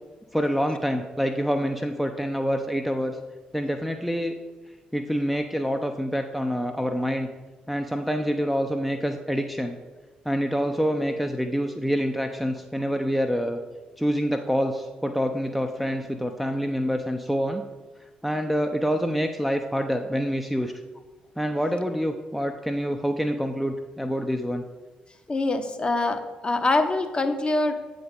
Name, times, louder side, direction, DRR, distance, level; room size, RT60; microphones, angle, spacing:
voice 1, 0.3-3.2 3.5-4.3 4.9-7.3 7.7-9.8 10.3-13.6 14.0-17.6 18.2-20.7 21.4-24.6, equal, ahead, 5 dB, 0.5 m, -26 dB
voice 2, 25.3-27.7, left 2 dB, 25° left, 7 dB, 0.8 m, -24 dB
7.7 x 4.0 x 5.2 m, 1.3 s
figure-of-eight pair, 40°, 4 cm